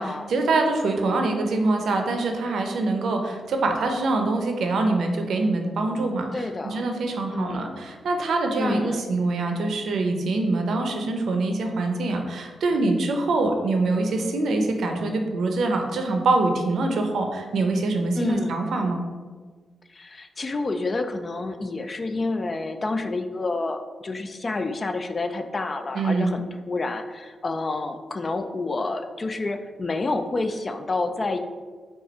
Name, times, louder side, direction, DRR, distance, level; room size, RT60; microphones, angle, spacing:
voice 1, 0.3-19.0 25.9-26.4, right 2 dB, 75° right, 4 dB, 0.6 m, -24 dB
voice 2, 6.3-6.8 7.3-7.8 8.6-9.0 18.1-18.6 19.9-31.4, left 3 dB, 35° left, 7 dB, 0.3 m, -29 dB
5.2 x 2.4 x 4.2 m, 1.5 s
wide cardioid pair, 120°, 0 cm